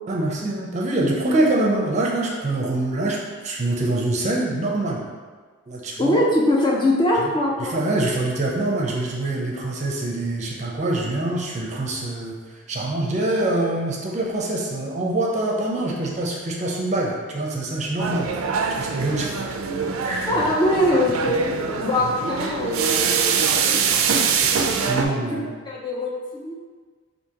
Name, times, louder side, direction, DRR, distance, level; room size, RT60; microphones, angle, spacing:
voice 1, 0.1-5.1 5.7-6.2 7.6-18.3 18.7-19.3 20.0-20.4 24.4-25.5, right 2 dB, 35° right, -2 dB, 0.5 m, -25 dB
voice 2, 6.0-7.8 20.3-23.5 24.1-25.0 25.3-25.4 25.7-26.6, left 1 dB, 20° left, -2 dB, 0.4 m, -22 dB
sound 1, 18.0-25.1, right 6 dB, 90° right, 0.3 m, -24 dB
4.9 x 2.6 x 2.8 m, 1.5 s
head